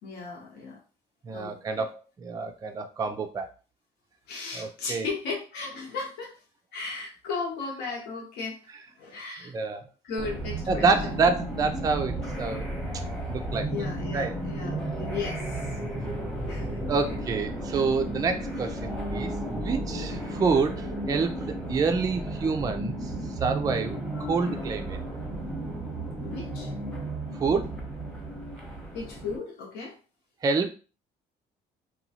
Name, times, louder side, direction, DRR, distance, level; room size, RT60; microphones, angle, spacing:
voice 1, 0.0-0.8 1.3-1.8 4.3-6.4 6.7-8.6 8.9-9.5 10.0-11.2 13.5-15.7 16.1-16.2 16.5-17.2 24.5-24.7 26.2-26.7 28.9-30.0, left 4 dB, 80° left, -1 dB, 0.9 m, -36 dB
voice 2, 1.2-3.5 4.5-5.1 9.5-9.9 10.7-12.7 13.3-13.7 14.1-14.4 16.9-23.1 23.4-24.0 24.3-25.0 27.4-27.7 30.4-30.7, right 4 dB, 20° right, 6 dB, 0.3 m, -27 dB
sound 1, 10.2-29.4, right 1 dB, 5° left, 0.8 m, -33 dB
2.9 x 2.3 x 2.7 m, 0.36 s
cardioid pair, 110°, 17 cm